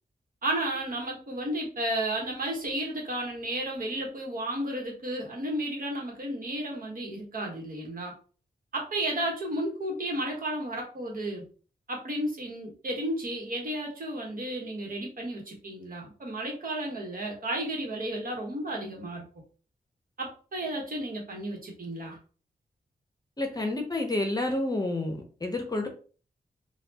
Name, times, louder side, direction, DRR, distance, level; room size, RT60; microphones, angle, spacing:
voice 1, 0.4-8.1 8.7-11.4 11.9-19.3 20.2-22.2, right 1 dB, 60° right, 0 dB, 1.3 m, -33 dB
voice 2, 23.4-25.9, left 2 dB, 25° left, 4 dB, 0.7 m, -29 dB
4.1 x 2.3 x 2.8 m, 0.39 s
wide cardioid pair, 100°, 17 cm